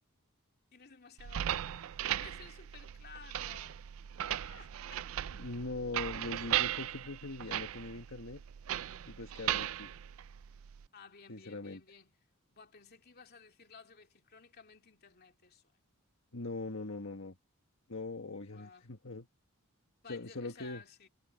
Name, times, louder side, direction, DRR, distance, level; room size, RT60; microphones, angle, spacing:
voice 1, 0.7-3.8 4.2-5.1 10.9-12.1 12.5-15.6 18.5-18.8 20.0-21.1, left 5 dB, 45° left, 2.9 m, -55 dB
sound 1, 1.2-10.9, right 11 dB, 65° right, 0.4 m, -37 dB
voice 2, 5.3-8.4 9.1-9.9 11.3-11.8 16.3-17.3 17.9-19.3 20.1-20.8, left 2 dB, 60° left, 1.5 m, -41 dB
head